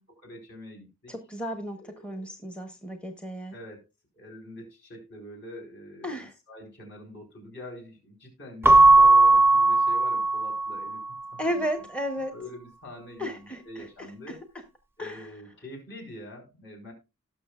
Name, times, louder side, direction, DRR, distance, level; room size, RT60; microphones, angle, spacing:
voice 1, 0.1-1.1 1.8-2.3 3.5-3.8 4.1-11.0 11.3-11.7 12.3-14.4 15.0-16.9, left 1 dB, 55° left, 1 dB, 4.5 m, -45 dB
voice 2, 1.1-3.6 6.0-6.3 11.4-12.4 13.2-14.4 15.0-15.3, equal, 5° left, 7 dB, 0.8 m, -34 dB
Keyboard (musical) / Bell, 8.6-11.1, right 2 dB, 10° right, 0.5 m, -18 dB
18.5 x 6.3 x 2.4 m, 0.25 s
head